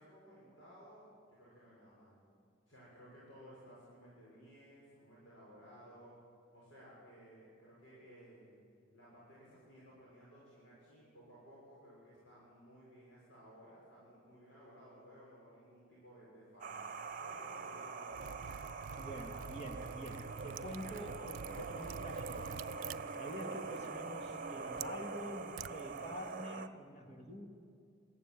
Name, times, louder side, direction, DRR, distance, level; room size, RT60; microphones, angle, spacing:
voice 1, 0.0-2.2 2.7-6.1 6.5-8.6 8.9-16.8 17.2-18.4, equal, 75° left, -7 dB, 6.7 m, -58 dB
sound 1, 16.6-26.7, right 4 dB, 45° right, 1.1 m, -44 dB
Liquid, 18.1-26.4, right 7 dB, 90° right, 0.4 m, -49 dB
voice 2, 18.9-27.5, equal, 35° left, 2 dB, 2.5 m, -47 dB
22.0 x 15.5 x 9.5 m, 2.4 s
head